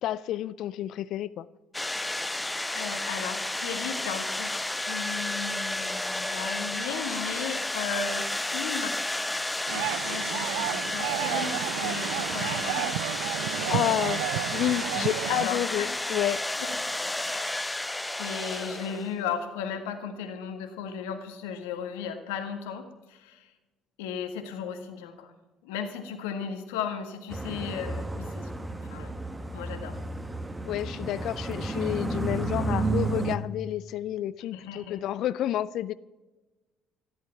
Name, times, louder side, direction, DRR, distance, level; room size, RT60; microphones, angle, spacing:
voice 1, 0.0-1.5 13.7-14.2 14.5-16.4 30.6-35.9, left 12 dB, 65° left, 18 dB, 0.4 m, -30 dB
sound 1, 1.7-19.3, left 1 dB, 10° left, 0.7 m, -32 dB
voice 2, 2.7-9.3 9.6-13.0 13.5-14.0 15.3-15.9 16.6-16.8 17.3-17.9 18.2-23.5 24.0-25.3 25.6-29.1 29.5-30.0 34.4-35.0, left 7 dB, 80° left, 6 dB, 1.7 m, -36 dB
sound 2, 9.7-15.4, right 17 dB, 80° right, 0.3 m, -32 dB
sound 3, 27.3-33.4, right 3 dB, 15° right, 1.5 m, -32 dB
13.5 x 12.0 x 5.9 m, 1.1 s
hypercardioid pair, 55°, 0 cm